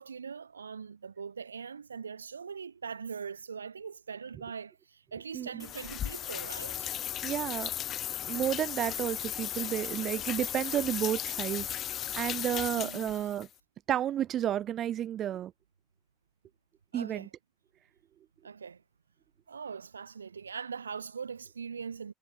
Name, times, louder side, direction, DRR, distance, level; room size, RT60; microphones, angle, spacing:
voice 1, 0.0-6.9 12.7-13.3 16.9-17.3 18.4-18.8 19.5-22.1, right 6 dB, 85° right, 0.8 m, -41 dB
voice 2, 5.3-5.7 7.2-7.7 8.3-11.7 12.1-13.5 13.9-15.5 16.9-17.3, right 11 dB, 45° right, 1.0 m, -31 dB
sound 1, 5.6-13.5, left 11 dB, 45° left, 1.8 m, -36 dB
figure-of-eight pair, 60°, 0 cm